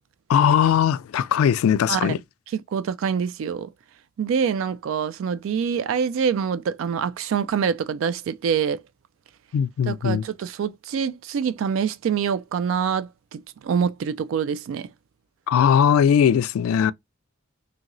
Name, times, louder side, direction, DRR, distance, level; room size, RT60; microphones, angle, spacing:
voice 1, 0.3-2.2 9.5-10.2 15.5-16.9, left 8 dB, 90° left, 0.3 m, -19 dB
voice 2, 2.5-3.7 4.2-8.8 9.9-14.9, right 7 dB, 70° right, 0.3 m, -25 dB
2.9 x 2.8 x 2.5 m
head